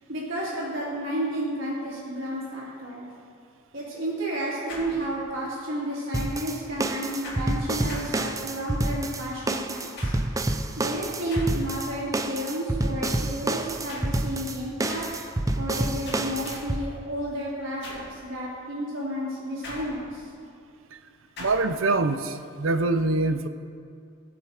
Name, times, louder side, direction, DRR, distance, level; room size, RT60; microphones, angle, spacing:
voice 1, 0.1-3.1 3.7-10.1 10.8-15.1 15.6-20.2, right 1 dB, 60° right, -12 dB, 2.8 m, -31 dB
sound 1, 4.7-5.5 7.2-8.8 10.0-10.5 11.3-11.9 13.9-14.3 14.9-15.3 16.1-16.9 17.8-18.2 19.6-20.3 21.4-21.8, left 2 dB, 55° left, 2.3 m, -42 dB
sound 2, 6.1-16.8, right 2 dB, 15° right, 0.5 m, -28 dB
voice 2, 21.4-23.5, right 2 dB, 80° right, 9 dB, 0.7 m, -24 dB
17.0 x 5.8 x 5.0 m, 2.3 s
head